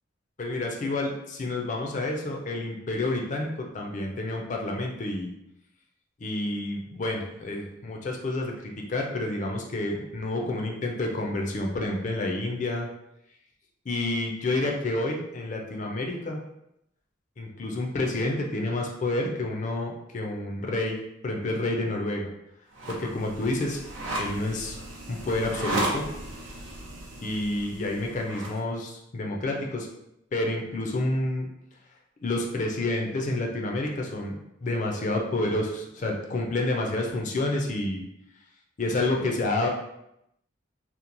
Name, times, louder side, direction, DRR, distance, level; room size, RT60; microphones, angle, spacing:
voice 1, 0.4-5.3 6.2-12.9 13.9-16.4 17.4-22.3 22.9-23.8 24.2-24.8 25.1-26.0 27.2-29.9 30.3-31.5 32.2-38.0 38.8-39.7, left 2 dB, 40° left, 1 dB, 0.4 m, -29 dB
sound 1, 22.7-28.6, right 1 dB, 85° right, 0.6 m, -35 dB
2.9 x 2.1 x 2.5 m, 0.82 s
head